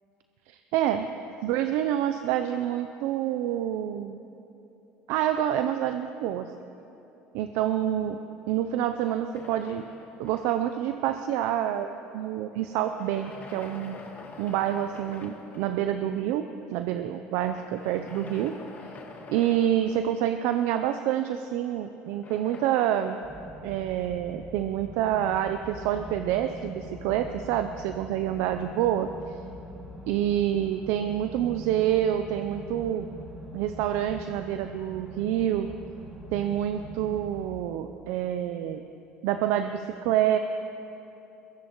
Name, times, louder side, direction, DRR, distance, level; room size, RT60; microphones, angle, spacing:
voice 1, 0.5-1.1 1.4-4.2 5.1-6.5 7.3-8.2 8.5-9.8 10.2-11.9 12.1-14.0 14.4-16.4 16.7-18.6 19.3-23.2 23.6-29.3 30.1-33.1 33.5-35.7 36.3-38.8 39.2-40.4, right 11 dB, 75° right, 8 dB, 0.6 m, -27 dB
sound 1, 9.3-10.9 12.7-15.9 17.4-20.6 22.1-22.7, left 3 dB, 35° left, 1.9 m, -46 dB
sound 2, 23.2-37.5, equal, 10° right, 1.9 m, -43 dB
22.0 x 16.0 x 3.1 m, 3.0 s
supercardioid pair, 90°, 5 cm